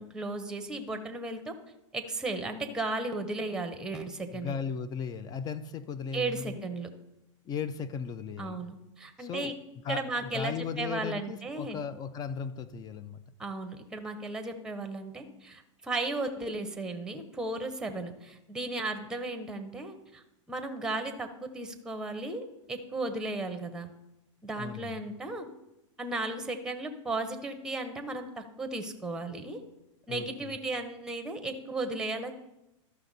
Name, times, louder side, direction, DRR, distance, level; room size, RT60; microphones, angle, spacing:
voice 1, 0.0-1.5 1.9-4.6 6.1-6.9 8.4-9.5 9.9-11.8 13.4-23.9 24.4-25.5 26.0-29.6 30.1-32.3, right 2 dB, 5° right, 7 dB, 0.8 m, -35 dB
voice 2, 4.3-6.7 7.5-8.6 9.2-9.5 9.8-13.2 24.6-25.0 30.1-30.5, left 6 dB, 25° left, 14 dB, 0.4 m, -36 dB
13.0 x 5.8 x 4.0 m, 0.91 s
hypercardioid pair, 130°, 16 cm